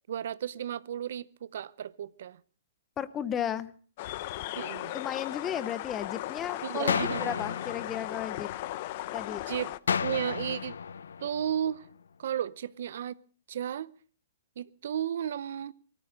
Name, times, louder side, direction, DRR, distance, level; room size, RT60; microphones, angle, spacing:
voice 1, 0.1-2.4 4.6-4.9 6.6-7.4 9.5-9.7 10.0-10.7 11.2-11.9 12.2-13.2 13.5-13.9 14.6-15.7, right 9 dB, 65° right, 0.6 m, -34 dB
voice 2, 3.0-3.7 4.9-8.5 9.1-9.4, left 9 dB, 20° left, 0.8 m, -34 dB
sound 1, 4.0-9.8, left 15 dB, 45° left, 0.6 m, -37 dB
sound 2, 6.9-8.9 9.9-11.9, left 6 dB, 90° left, 0.6 m, -33 dB
18.5 x 14.0 x 5.0 m
hypercardioid pair, 150°, 0 cm